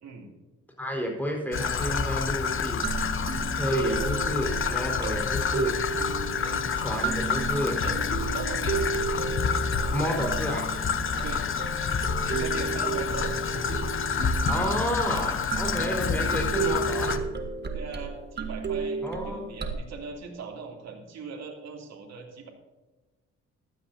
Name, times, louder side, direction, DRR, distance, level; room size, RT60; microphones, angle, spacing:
voice 1, 0.0-0.3 6.4-6.7 7.8-8.0 8.3-8.8 11.1-11.5 11.9-13.9 17.7-22.5, right 5 dB, 60° right, 0 dB, 3.1 m, -40 dB
voice 2, 0.8-2.8 3.4-5.8 6.7-7.8 9.9-10.7 14.5-17.2 19.0-19.4, equal, 5° left, 0 dB, 4.6 m, -31 dB
Traffic noise roadway noise / Trickle dribble, 1.5-17.2, left 6 dB, 45° left, 0.9 m, -28 dB
sound 1, 1.5-19.7, right 5 dB, 35° right, 1.6 m, -33 dB
15.0 x 13.0 x 2.8 m, 1.2 s
cardioid pair, 90°, 30 cm